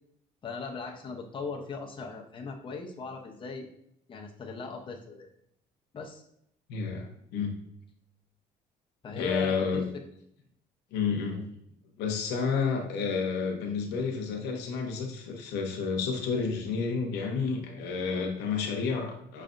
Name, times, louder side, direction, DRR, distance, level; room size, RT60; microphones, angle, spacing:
voice 1, 0.4-3.7 4.1-5.3 5.9-6.2 9.0-9.8 11.3-11.5, left 4 dB, 30° left, 1 dB, 0.8 m, -38 dB
voice 2, 6.7-7.5 9.2-9.8 10.9-11.4 12.0-19.4, left 5 dB, 90° left, 2 dB, 0.9 m, -30 dB
6.1 x 3.3 x 2.6 m, 0.73 s
cardioid pair, 110°, 17 cm